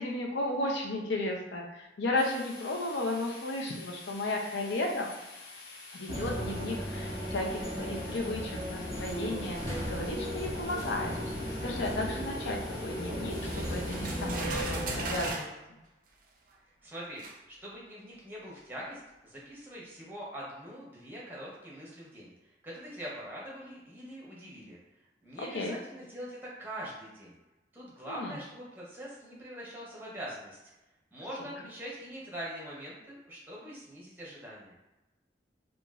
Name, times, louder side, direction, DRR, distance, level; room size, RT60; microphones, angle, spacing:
voice 1, 0.0-5.1 5.9-11.1 11.6-15.5 25.4-25.8 28.0-28.3, left 2 dB, 80° left, 0 dB, 0.6 m, -34 dB
sound 1, 2.2-14.3, left 3 dB, 60° left, 1.1 m, -48 dB
sound 2, 6.1-15.3, equal, 15° left, 0.8 m, -36 dB
sound 3, 13.3-15.5 16.5-16.6 17.2-17.4, right 3 dB, 45° right, 0.4 m, -38 dB
voice 2, 16.8-24.8 25.2-27.4 27.7-30.6 31.1-34.8, equal, 10° right, -5 dB, 0.7 m, -43 dB
3.0 x 2.4 x 2.4 m, 1.0 s
head